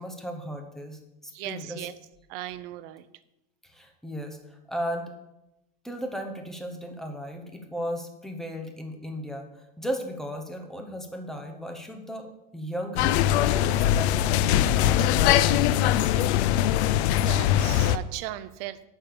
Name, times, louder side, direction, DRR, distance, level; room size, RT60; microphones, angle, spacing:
voice 1, 0.0-1.9 3.6-5.1 5.8-9.5 9.8-15.9, equal, ahead, 4 dB, 1.1 m, -36 dB
voice 2, 1.3-2.0 2.3-3.1 17.3-18.9, right 15 dB, 50° right, 13 dB, 0.7 m, -37 dB
sound 1, 13.0-18.0, left 12 dB, 70° left, 0.6 m, -22 dB
9.0 x 5.6 x 6.9 m, 0.91 s
supercardioid pair, 145°, 35 cm